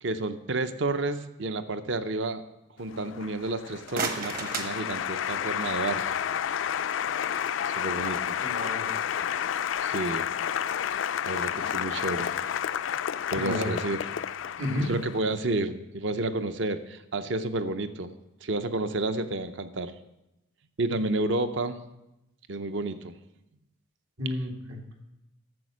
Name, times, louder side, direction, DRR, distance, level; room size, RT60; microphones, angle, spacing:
voice 1, 0.0-2.4 2.8-6.0 7.8-8.3 9.8-10.3 11.3-12.3 13.3-14.0 14.8-18.1 18.4-19.9 20.8-21.8 22.5-23.1, right 2 dB, 60° right, 11 dB, 0.7 m, -30 dB
Applause, 2.9-15.3, left 9 dB, 65° left, 0.3 m, -31 dB
sound 1, 3.6-5.6, right 4 dB, 45° right, 1.1 m, -35 dB
voice 2, 8.4-8.9 13.3-13.7 14.6-14.9 24.2-25.0, left 1 dB, 80° right, 1 dB, 2.0 m, -31 dB
12.5 x 7.2 x 6.3 m, 0.90 s
head